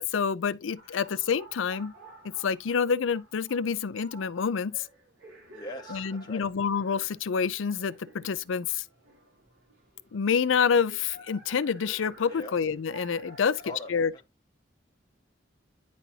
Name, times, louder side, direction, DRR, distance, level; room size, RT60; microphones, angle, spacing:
voice 1, 0.0-1.9 2.4-4.9 5.9-8.8 10.1-13.5 13.9-14.1, left 6 dB, 85° left, 0.5 m, -27 dB
sound 1, 0.7-14.0, right 2 dB, 85° right, 2.7 m, -52 dB
voice 2, 5.5-6.4 12.3-12.5 13.4-14.2, left 1 dB, 20° left, 1.2 m, -42 dB
10.5 x 4.1 x 2.7 m
head